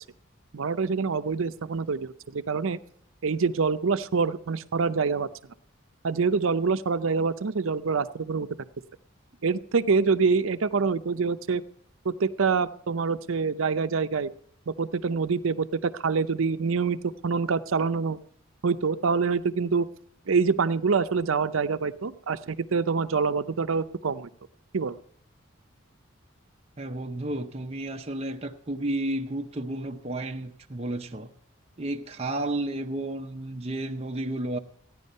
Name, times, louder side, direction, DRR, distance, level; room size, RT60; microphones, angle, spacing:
voice 1, 0.5-2.8 3.2-5.3 6.0-8.5 9.4-11.6 12.0-14.3 14.7-17.0 17.2-18.2 18.6-19.9 20.3-24.3 24.7-25.0, right 5 dB, 75° right, 0.6 m, -26 dB
voice 2, 26.8-31.3 31.8-34.6, right 1 dB, 30° right, 0.7 m, -32 dB
15.5 x 10.0 x 5.4 m
head